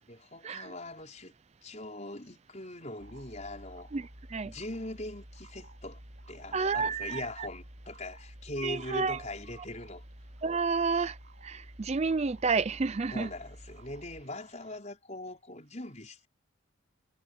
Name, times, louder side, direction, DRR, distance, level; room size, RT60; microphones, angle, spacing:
voice 1, 0.1-1.3 1.6-3.9 4.4-6.0 6.3-10.0 13.1-16.3, left 1 dB, 35° left, 5.4 m, -41 dB
sound 1, 3.0-14.2, equal, 50° right, 3.7 m, -51 dB
voice 2, 3.9-4.5 6.5-7.5 8.6-9.2 10.4-13.3, right 4 dB, 30° right, 0.4 m, -30 dB
head